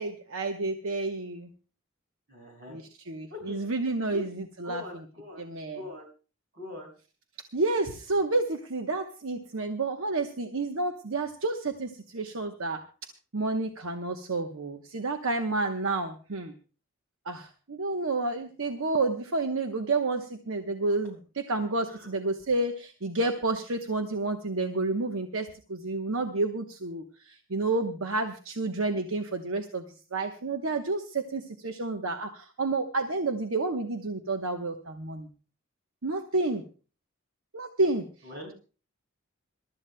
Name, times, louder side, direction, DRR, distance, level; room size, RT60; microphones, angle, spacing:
voice 1, 0.0-1.5 2.7-4.8 5.4-5.8 7.5-12.8 13.3-16.5 17.3-29.8 30.1-35.3 36.0-36.6 37.5-38.0, right 3 dB, 75° right, 5 dB, 1.0 m, -30 dB
voice 2, 2.3-2.8 3.3-3.6 4.1-4.3 4.6-5.4 5.7-6.0 6.5-6.9 21.9-22.1 38.2-38.5, left 2 dB, 50° right, 2 dB, 5.9 m, -42 dB
26.5 x 13.0 x 2.2 m, 0.37 s
head